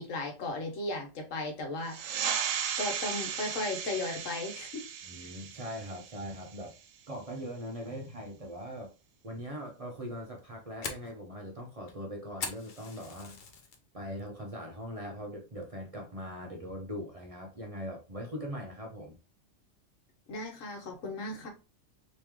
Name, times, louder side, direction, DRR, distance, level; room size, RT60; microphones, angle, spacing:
voice 1, 0.0-2.0 2.8-4.8 20.3-21.5, left 2 dB, 80° left, 1.3 m, -36 dB
sound 1, 1.9-7.0, right 8 dB, 90° right, 1.0 m, -36 dB
voice 2, 5.0-6.8 7.1-8.9 9.2-13.4 13.9-19.2, equal, 40° right, 0.5 m, -41 dB
Fire, 10.2-13.8 14.2-14.6 15.0-15.1 15.6-16.0, left 4 dB, 50° left, 0.7 m, -41 dB
3.1 x 3.0 x 3.5 m
omnidirectional pair, 1.3 m